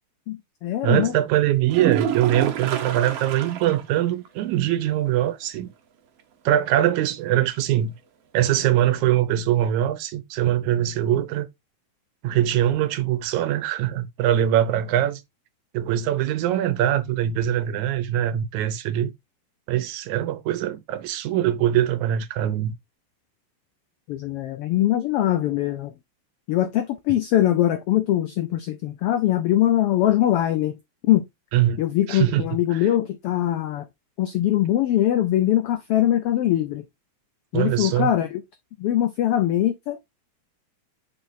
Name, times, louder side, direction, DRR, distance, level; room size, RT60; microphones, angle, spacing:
voice 1, 0.3-1.1 24.1-25.9 26.5-30.8 31.0-31.2 31.8-33.9 34.2-36.8 37.5-38.4 38.8-40.0, left 12 dB, 90° left, 1.3 m, -22 dB
voice 2, 0.8-5.7 6.5-8.0 8.3-11.5 12.2-15.2 15.7-19.1 19.7-22.7 31.5-31.8 32.1-32.5 32.7-32.9 37.5-38.1, right 12 dB, 85° right, 2.2 m, -22 dB
sound 1, 1.7-3.9 4.3-4.4 4.8-4.9 8.7-8.8, right 9 dB, 65° right, 1.8 m, -28 dB
6.8 x 5.8 x 2.6 m
omnidirectional pair, 3.3 m